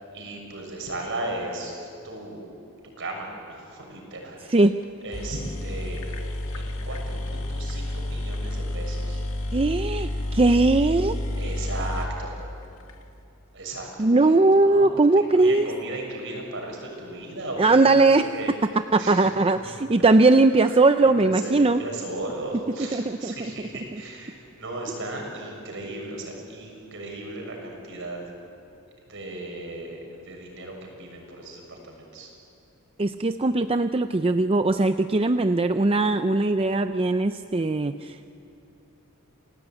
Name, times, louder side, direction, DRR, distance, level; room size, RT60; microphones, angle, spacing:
voice 1, 0.1-2.4 3.0-4.6 5.0-6.0 6.5-9.2 11.4-12.4 13.5-14.9 15.3-18.0 18.3-18.5 19.0-19.6 20.6-20.7 21.2-28.2 29.1-32.3, right 2 dB, 60° right, 1 dB, 6.6 m, -36 dB
sound 1, 4.8-4.9 5.1-12.9, left 1 dB, 70° left, 2.3 m, -30 dB
voice 2, 9.5-11.2 14.0-15.7 17.6-18.3 18.9-21.8 22.9-24.0 33.0-38.3, right 2 dB, 25° right, 9 dB, 0.5 m, -20 dB
28.5 x 19.0 x 9.0 m, 2.6 s
head